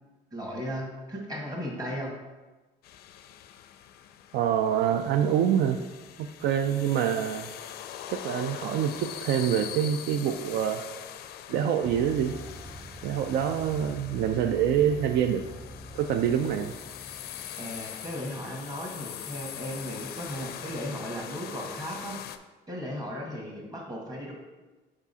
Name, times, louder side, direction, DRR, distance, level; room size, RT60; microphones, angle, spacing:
voice 1, 0.3-2.1 17.6-22.2 22.7-24.3, equal, 20° right, -1 dB, 1.6 m, -36 dB
sound 1, 2.8-22.4, left 10 dB, 70° left, 0.4 m, -42 dB
voice 2, 4.3-5.8 6.2-7.5 8.1-10.8 11.5-12.3 13.0-15.4 15.9-16.7, right 9 dB, 80° right, 7 dB, 0.4 m, -26 dB
sound 2, 11.8-18.6, equal, 10° left, 0.4 m, -45 dB
4.9 x 3.6 x 5.4 m, 1.2 s
cardioid pair, 110°, 17 cm